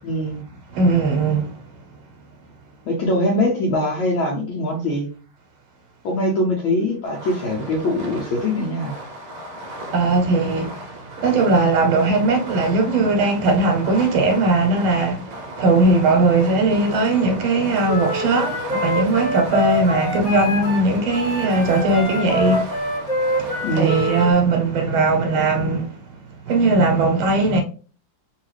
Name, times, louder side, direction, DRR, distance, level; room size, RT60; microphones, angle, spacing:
voice 1, 0.0-0.4 2.9-5.1 6.0-8.9 23.6-24.0, left 1 dB, 75° left, 1.5 m, -22 dB
voice 2, 0.7-1.5 9.9-22.8 23.4-26.0 26.5-27.6, right 3 dB, 80° right, 1.5 m, -19 dB
Fireworks, 7.0-24.3, right 1 dB, 60° right, 1.0 m, -36 dB
Wind instrument woodwind instrument, 17.9-20.8 21.1-24.3, equal, 25° left, 1.1 m, -25 dB
3.6 x 2.3 x 3.1 m
omnidirectional pair, 2.3 m